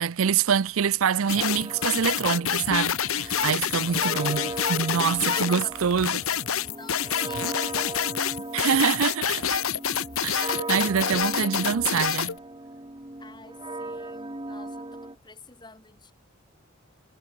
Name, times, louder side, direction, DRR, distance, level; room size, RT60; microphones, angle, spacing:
voice 1, 0.0-6.2 8.5-9.6 10.2-12.4, right 7 dB, 70° right, 0.5 m, -25 dB
sound 1, 1.3-12.4, left 8 dB, 75° left, 1.5 m, -27 dB
sound 2, 1.4-15.2, right 2 dB, 20° right, 1.5 m, -38 dB
voice 2, 5.3-6.1 6.8-8.1 13.2-14.9 15.2-16.1, left 4 dB, 20° left, 4.3 m, -46 dB
head